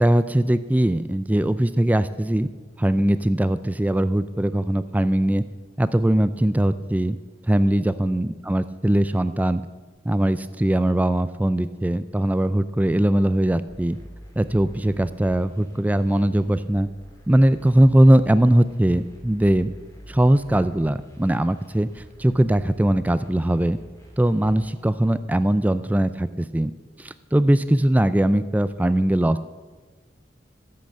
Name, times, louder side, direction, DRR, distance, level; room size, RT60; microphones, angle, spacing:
voice 1, 0.0-2.5 2.8-5.4 5.8-7.2 7.5-9.6 10.0-14.0 14.4-16.9 17.3-19.7 20.1-23.8 24.2-26.7 27.0-29.5, right 1 dB, 10° right, 13 dB, 0.3 m, -20 dB
sound 1, 13.7-24.7, equal, 15° left, 2.3 m, -46 dB
14.0 x 7.8 x 7.4 m, 1.3 s
head